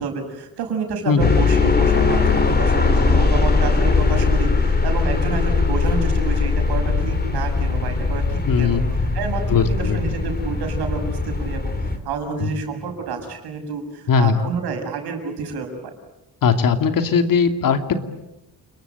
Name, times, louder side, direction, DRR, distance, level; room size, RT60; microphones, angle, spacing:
voice 1, 0.0-11.7 12.0-15.9, right 4 dB, 80° right, 5 dB, 6.7 m, -29 dB
sound 1, 1.2-12.0, left 4 dB, 25° left, 3.6 m, -20 dB
voice 2, 8.5-8.8 9.5-10.0 12.4-12.5 14.1-14.4 16.4-17.9, left 6 dB, 55° left, 7 dB, 2.8 m, -19 dB
29.5 x 22.0 x 9.1 m, 0.96 s
cardioid pair, 115°, 38 cm